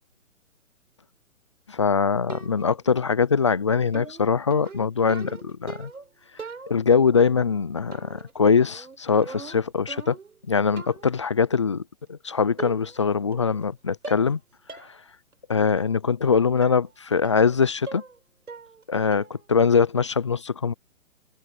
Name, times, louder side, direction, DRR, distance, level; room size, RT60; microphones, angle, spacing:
voice 1, 1.7-5.9 6.7-10.2 10.5-11.8 12.1-14.4 14.7-15.0 15.5-18.0 18.9-20.7, left 5 dB, 25° left, 0.4 m, -22 dB
sound 1, 2.3-2.8 3.9-6.1 6.4-7.0 7.9-8.3 8.6-10.4 10.8-11.1 12.1-12.2 12.6-13.0 13.3-13.7 14.0-14.4 14.7-14.9 15.3-15.4 16.6-16.8 17.2-17.5 17.9-18.2 18.5-18.8 19.1-19.4, right 4 dB, 90° right, 4.1 m, -41 dB
hypercardioid pair, 145°, 42 cm